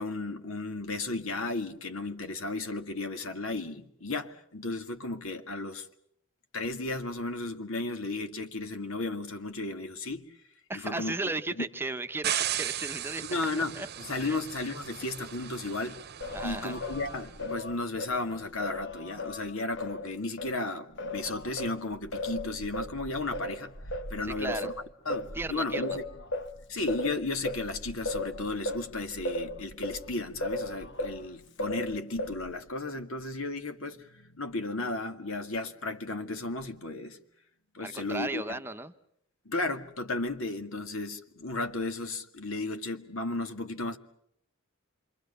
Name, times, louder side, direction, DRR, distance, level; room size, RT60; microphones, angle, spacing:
voice 1, 0.0-5.9 6.5-10.4 10.7-11.3 11.6-11.7 13.3-16.0 16.4-23.8 24.1-24.7 25.1-26.0 26.7-37.2 37.7-38.6 39.5-44.0, left 2 dB, 75° left, 2.1 m, -34 dB
voice 2, 10.7-13.2 13.8-13.9 14.2-14.4 16.3-16.8 24.2-24.7 25.3-25.9 37.8-38.9, right 2 dB, 10° right, 0.9 m, -35 dB
sound 1, 12.2-17.4, right 11 dB, 50° right, 0.9 m, -36 dB
Singing, 16.2-20.6 21.0-31.3 31.6-32.6, left 1 dB, 60° left, 1.2 m, -37 dB
28.0 x 24.5 x 6.8 m
head